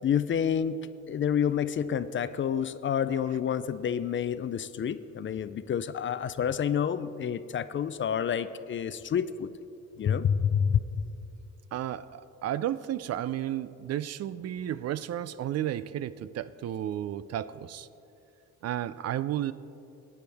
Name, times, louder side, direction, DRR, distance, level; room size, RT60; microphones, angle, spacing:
voice 1, 0.0-0.8 1.1-9.5 10.0-10.8, left 8 dB, 40° left, 14 dB, 0.5 m, -28 dB
voice 2, 11.7-17.9 18.6-19.5, right 11 dB, 55° right, 16 dB, 0.4 m, -33 dB
17.5 x 9.6 x 3.4 m, 2.7 s
cardioid pair, 90°, 30 cm